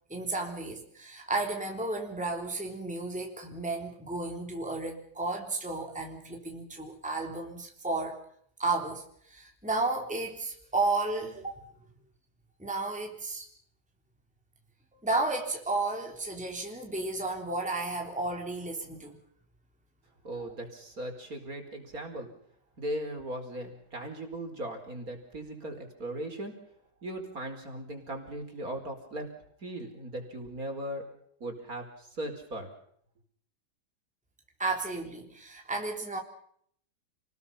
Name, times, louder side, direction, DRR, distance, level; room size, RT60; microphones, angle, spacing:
voice 1, 0.1-8.2 8.6-11.6 12.6-13.5 15.0-19.2 20.4-20.5 34.6-36.2, right 2 dB, 5° right, 1 dB, 3.6 m, -33 dB
voice 2, 20.2-22.3 22.8-26.5 27.0-29.2 29.6-31.0 31.4-32.7, right 1 dB, 45° right, 4 dB, 5.0 m, -38 dB
29.5 x 20.5 x 5.6 m, 0.66 s
omnidirectional pair, 2.1 m